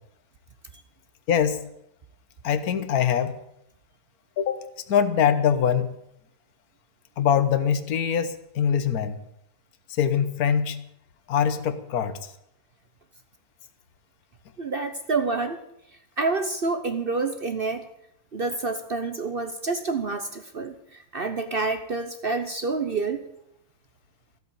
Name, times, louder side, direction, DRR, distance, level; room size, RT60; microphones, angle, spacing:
voice 1, 1.3-1.6 2.4-3.3 4.4-4.6 4.9-5.9 7.2-9.2 10.0-10.8 11.3-12.2, left 8 dB, 55° left, 11 dB, 1.4 m, -23 dB
voice 2, 14.6-15.6 16.2-17.8 18.3-20.7 21.1-23.2, right 3 dB, 55° right, 8 dB, 0.6 m, -28 dB
14.5 x 8.3 x 8.7 m, 0.77 s
omnidirectional pair, 2.2 m